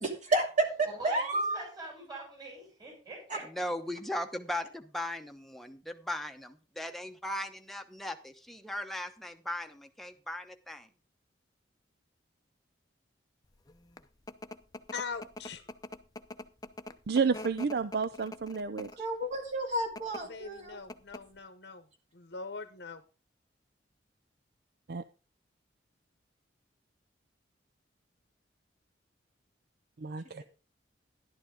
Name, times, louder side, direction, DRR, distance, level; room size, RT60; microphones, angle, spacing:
voice 1, 0.0-1.6 3.3-3.4 19.0-20.8, right 2 dB, 40° right, 3 dB, 2.7 m, -31 dB
voice 2, 0.8-3.5, right 2 dB, 20° right, -2 dB, 6.9 m, -44 dB
voice 3, 3.5-10.9, left 1 dB, ahead, 5 dB, 1.0 m, -38 dB
sound 1, 13.7-19.1 19.8-20.2 20.6-20.7 20.9-21.4, left 1 dB, 20° left, 0.6 m, -44 dB
voice 4, 14.9-15.8 20.3-21.8 22.1-23.0, left 5 dB, 60° left, 9 dB, 0.9 m, -41 dB
voice 5, 17.1-18.9 24.9-25.0 30.0-30.4, right 5 dB, 55° right, 12 dB, 0.5 m, -30 dB
11.5 x 11.5 x 3.7 m, 0.33 s
head